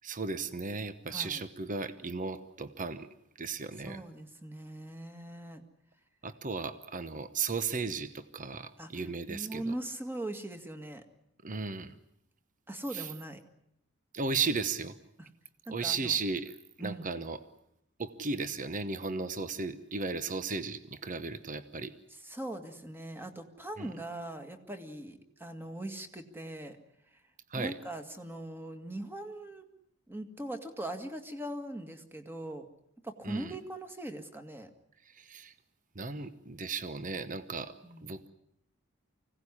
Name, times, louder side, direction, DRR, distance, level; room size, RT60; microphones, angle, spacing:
voice 1, 0.0-3.1 3.4-4.0 6.2-9.7 11.4-11.9 12.9-13.1 14.1-15.0 15.7-16.5 16.8-17.4 18.0-21.9 23.8-23.9 27.5-27.7 33.2-33.5 35.1-35.5 35.9-37.7 38.0-38.3, right 4 dB, 40° right, 12 dB, 1.0 m, -35 dB
voice 2, 1.1-1.4 3.8-5.6 8.8-8.9 9.3-11.0 12.7-13.4 15.2-15.3 15.7-16.2 16.8-17.1 22.2-26.8 27.5-29.6 30.1-32.7 33.0-34.7 37.8-38.2, right 1 dB, 10° right, 6 dB, 2.0 m, -40 dB
25.0 x 17.0 x 9.9 m, 0.79 s
head